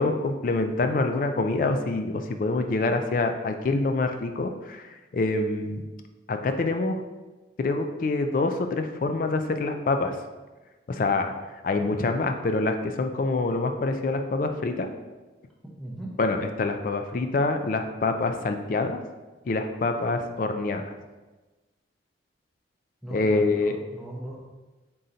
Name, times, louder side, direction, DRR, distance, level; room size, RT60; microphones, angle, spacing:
voice 1, 0.0-5.9 6.3-7.0 7.6-10.2 10.9-11.3 11.6-14.9 16.2-19.0 19.5-20.9 23.1-23.8, left 3 dB, 45° left, 6 dB, 0.3 m, -26 dB
voice 2, 15.8-16.1 23.0-24.4, right 1 dB, ahead, -5 dB, 0.7 m, -38 dB
3.8 x 2.6 x 4.3 m, 1.2 s
head